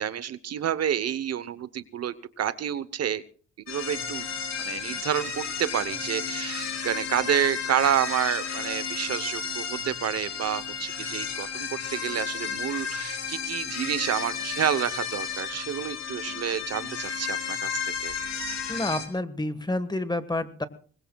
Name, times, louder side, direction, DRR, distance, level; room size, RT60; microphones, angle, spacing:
voice 1, 0.0-3.2 3.7-4.2 4.7-18.1, right 9 dB, 55° right, 15 dB, 0.9 m, -29 dB
sound 1, 3.7-19.1, left 6 dB, 65° left, 3.5 m, -33 dB
voice 2, 18.7-20.6, left 1 dB, 15° left, 11 dB, 1.4 m, -29 dB
24.5 x 20.0 x 2.3 m, 0.43 s
cardioid pair, 90°, 30 cm